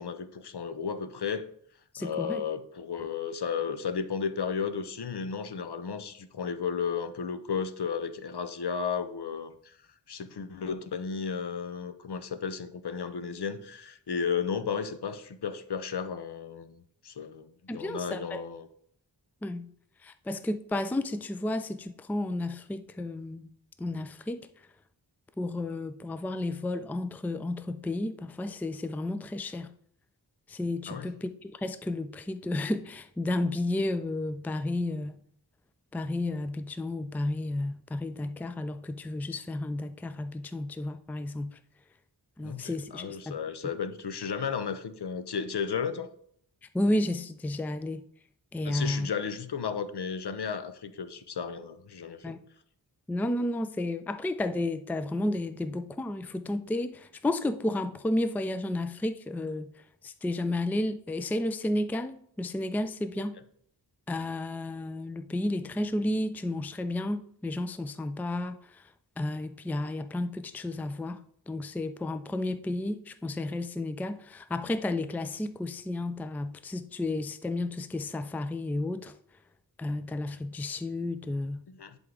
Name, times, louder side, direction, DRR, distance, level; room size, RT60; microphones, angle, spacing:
voice 1, 0.0-1.5 2.0-9.8 10.1-18.7 30.9-31.1 42.4-46.1 48.6-52.4 81.7-82.0, left 6 dB, 70° left, 0.7 m, -34 dB
voice 2, 1.9-2.4 17.7-18.4 19.4-19.7 20.0-23.5 23.8-24.5 25.4-29.7 30.5-35.1 35.9-41.6 42.4-43.4 46.7-48.0 48.5-49.1 52.2-52.4 53.1-59.7 60.0-63.4 64.1-68.9 69.2-79.1 79.8-81.6, left 1 dB, 5° left, 0.3 m, -32 dB
10.5 x 3.6 x 3.7 m
wide cardioid pair, 50°, 42 cm